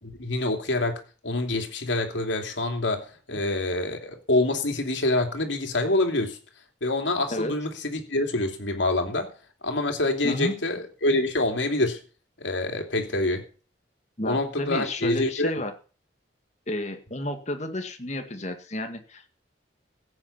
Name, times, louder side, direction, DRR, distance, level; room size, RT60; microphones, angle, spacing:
voice 1, 0.0-6.4 6.8-9.3 9.6-12.0 12.4-13.4 14.2-15.5, left 2 dB, 90° left, 3.0 m, -26 dB
voice 2, 10.2-10.6 14.2-15.7 16.7-19.3, left 1 dB, 40° left, 2.0 m, -32 dB
16.0 x 8.7 x 5.7 m
head